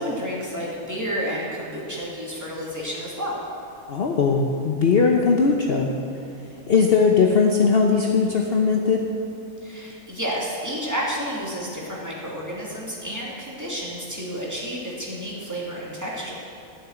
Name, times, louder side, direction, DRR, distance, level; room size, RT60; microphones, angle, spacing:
voice 1, 0.0-3.4 9.6-16.3, equal, 10° right, -5 dB, 2.7 m, -30 dB
voice 2, 3.9-5.9 6.7-9.0, left 5 dB, 50° left, 1 dB, 1.0 m, -19 dB
13.5 x 7.5 x 8.2 m, 2.8 s
omnidirectional pair, 1.4 m